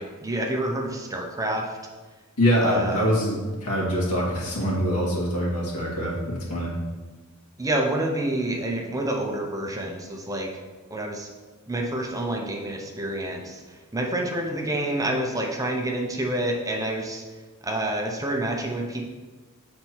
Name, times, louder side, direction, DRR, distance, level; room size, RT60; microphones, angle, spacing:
voice 1, 0.0-1.8 2.6-3.1 7.6-10.5 10.9-11.3 11.7-13.6 13.9-17.2 17.6-19.0, right 1 dB, 15° right, 1 dB, 0.7 m, -28 dB
voice 2, 2.4-6.8, equal, 90° left, -5 dB, 2.3 m, -24 dB
7.4 x 4.3 x 4.5 m, 1.3 s
head